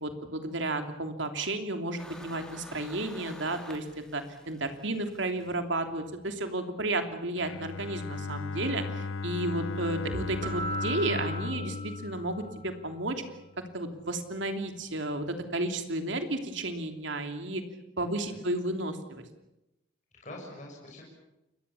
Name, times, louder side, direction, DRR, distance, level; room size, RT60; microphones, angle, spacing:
voice 1, 0.0-13.2 13.7-17.6 18.0-19.2, right 2 dB, 65° right, 6 dB, 3.1 m, -32 dB
sound 1, 2.0-6.5, left 1 dB, 5° left, 3.5 m, -50 dB
Bowed string instrument, 7.4-13.3, left 3 dB, 80° left, 0.9 m, -36 dB
Keyboard (musical), 10.4-12.8, right 1 dB, 45° right, 2.3 m, -38 dB
voice 2, 18.0-18.5 20.2-21.0, left 1 dB, 35° left, -2 dB, 6.6 m, -45 dB
28.5 x 22.0 x 7.1 m, 0.93 s
head